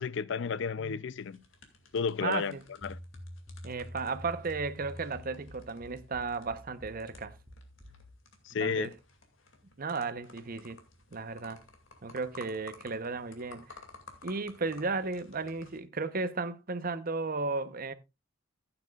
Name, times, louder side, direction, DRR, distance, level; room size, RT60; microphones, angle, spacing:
voice 1, 0.0-1.4 1.9-2.6 2.8-3.0 8.4-8.9, left 5 dB, 65° left, 0.5 m, -32 dB
sound 1, 1.2-15.8, left 3 dB, 90° left, 2.4 m, -55 dB
voice 2, 2.2-2.6 3.6-7.3 8.6-8.9 9.8-10.8 11.1-11.6 12.0-13.8 14.2-17.9, right 4 dB, 50° right, 0.8 m, -34 dB
sound 2, 2.8-8.1, equal, ahead, 3.5 m, -47 dB
14.5 x 8.8 x 2.4 m
head